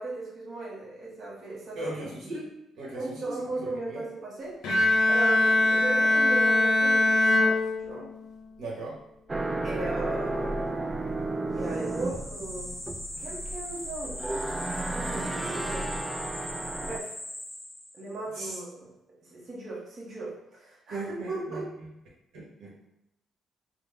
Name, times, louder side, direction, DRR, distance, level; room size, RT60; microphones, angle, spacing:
voice 1, 0.0-1.9 2.9-4.8 5.1-8.1 9.6-10.9 11.1-11.2 11.5-12.7 13.2-14.2 14.9-15.9 16.4-17.1 17.9-18.9 19.2-21.7, right 2 dB, 45° right, -5 dB, 1.2 m, -37 dB
voice 2, 1.7-2.5 2.8-3.3 3.9-4.0 8.6-9.0 18.3-18.6 20.9-21.6 22.3-22.7, right 1 dB, 85° right, -5 dB, 1.1 m, -37 dB
Bowed string instrument, 4.6-8.4, left 2 dB, 90° left, 0.7 m, -22 dB
sound 1, 9.3-17.0, right 2 dB, 25° right, 0.3 m, -33 dB
sound 2, 11.6-18.2, left 1 dB, 20° left, 0.7 m, -40 dB
3.6 x 2.2 x 3.4 m, 0.84 s
cardioid pair, 90°, 0 cm